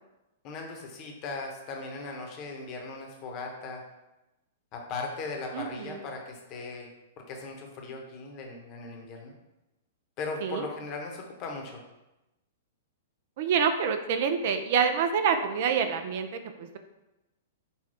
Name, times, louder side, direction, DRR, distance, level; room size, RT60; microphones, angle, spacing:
voice 1, 0.4-3.8 4.7-6.9 7.3-9.3 10.2-11.8, left 3 dB, 35° left, 1 dB, 0.9 m, -38 dB
voice 2, 5.5-6.0 10.4-10.7 13.4-16.8, right 6 dB, 50° right, 8 dB, 0.4 m, -27 dB
5.5 x 2.3 x 4.2 m, 0.99 s
figure-of-eight pair, 105°, 0 cm